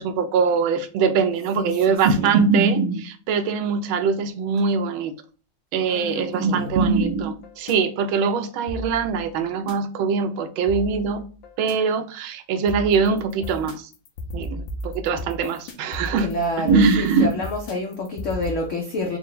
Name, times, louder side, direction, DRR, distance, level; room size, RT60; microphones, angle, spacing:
voice 1, 0.0-5.1 5.7-11.2 11.6-13.9 14.3-16.3 16.6-17.3, right 5 dB, 85° right, 1.4 m, -22 dB
voice 2, 1.6-2.4 5.9-6.9 16.2-19.2, left 1 dB, 90° left, 0.6 m, -29 dB
sound 1, 6.7-7.7 8.7-9.7 10.7-11.7 12.7-18.6, equal, 75° left, 1.4 m, -35 dB
4.4 x 2.1 x 3.8 m
omnidirectional pair, 2.2 m